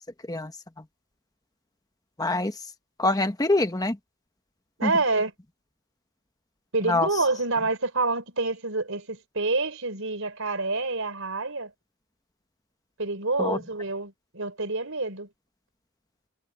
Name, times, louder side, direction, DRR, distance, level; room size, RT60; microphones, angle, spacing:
voice 1, 2.2-2.5 3.0-4.0 4.8-4.9 6.8-7.1 13.4-13.6, left 2 dB, 15° left, 1.1 m, -24 dB
voice 2, 4.8-5.3 6.7-11.7 13.0-15.3, right 3 dB, 65° right, 5.0 m, -27 dB
head